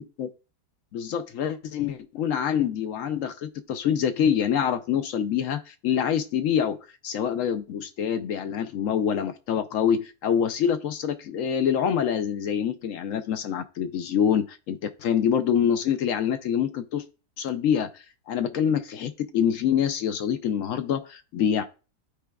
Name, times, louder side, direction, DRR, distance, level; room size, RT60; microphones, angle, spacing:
voice 1, 0.9-6.8 7.0-17.0 17.4-17.9 18.3-21.6, left 8 dB, 70° left, 0.8 m, -25 dB
13.5 x 4.9 x 2.3 m
omnidirectional pair, 1.9 m